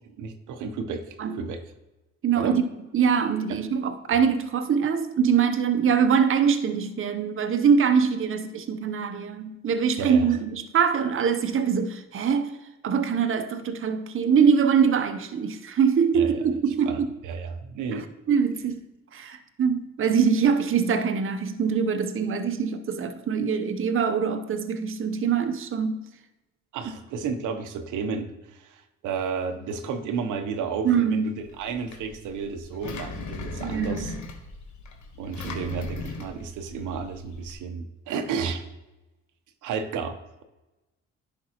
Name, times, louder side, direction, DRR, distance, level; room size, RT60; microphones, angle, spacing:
voice 1, 0.2-1.6 2.4-2.6 3.5-3.6 10.0-10.4 16.1-16.4 16.9-18.1 26.7-34.2 35.2-38.7 39.6-40.2, right 5 dB, 85° right, 8 dB, 0.8 m, -32 dB
voice 2, 2.2-2.6 2.9-12.6 12.8-17.1 18.3-18.8 19.1-26.0 30.8-31.3 33.6-34.2, right 6 dB, 45° right, 8 dB, 0.8 m, -23 dB
Engine, 31.4-37.5, left 4 dB, 70° left, 1.3 m, -39 dB
10.0 x 5.3 x 2.9 m, 1.0 s
cardioid pair, 90°, 30 cm